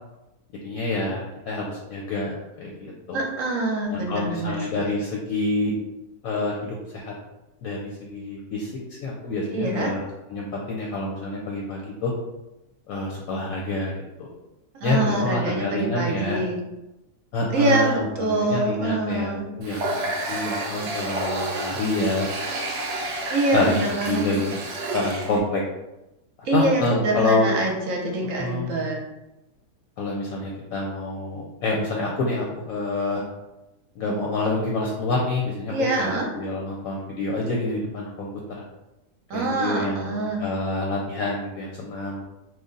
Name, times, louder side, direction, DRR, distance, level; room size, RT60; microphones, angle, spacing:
voice 1, 0.6-3.2 3.9-5.7 6.2-7.1 7.6-8.7 9.0-10.0 10.3-12.1 12.9-13.9 14.2-14.3 14.8-16.4 17.3-22.3 23.5-25.6 26.5-27.5 28.4-28.9 30.0-33.2 34.0-38.6 39.3-42.2, left 2 dB, 70° left, -2 dB, 0.9 m, -27 dB
voice 2, 3.1-4.9 9.5-9.9 14.7-16.6 17.5-19.5 23.3-24.2 26.4-29.0 35.7-36.3 39.3-40.4, right 2 dB, 60° right, -1 dB, 1.0 m, -25 dB
Water tap faucet, 19.6-25.4, right 2 dB, 85° right, 0.5 m, -30 dB
3.3 x 2.2 x 3.7 m, 0.96 s
omnidirectional pair, 1.8 m